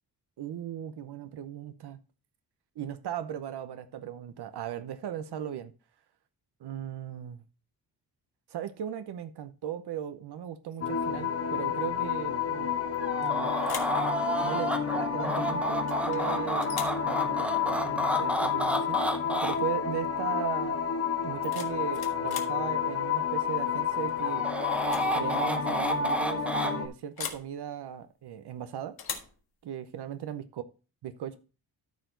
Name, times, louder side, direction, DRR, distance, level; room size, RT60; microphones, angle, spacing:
voice 1, 0.4-2.0 2.8-5.7 6.6-7.4 8.5-12.7 13.2-13.5 14.4-16.8 17.0-19.0 19.4-20.8 21.2-24.5 25.1-29.0 29.6-30.6 31.0-31.4, right 10 dB, 85° right, 11 dB, 0.9 m, -37 dB
sound 1, 10.8-26.9, left 6 dB, 40° left, 1.1 m, -30 dB
sound 2, 12.9-13.3 13.6-14.0 15.9-16.2 16.6-17.0 18.9-19.1 19.4-19.8 21.2-22.6 24.1-24.4 24.8-25.1 25.4-25.5 27.2-27.5 29.0-29.4, left 7 dB, 70° left, 1.6 m, -40 dB
sound 3, 13.0-19.6 24.2-26.7, equal, 5° right, 0.8 m, -31 dB
13.0 x 4.6 x 3.9 m, 0.32 s
wide cardioid pair, 145°, 39 cm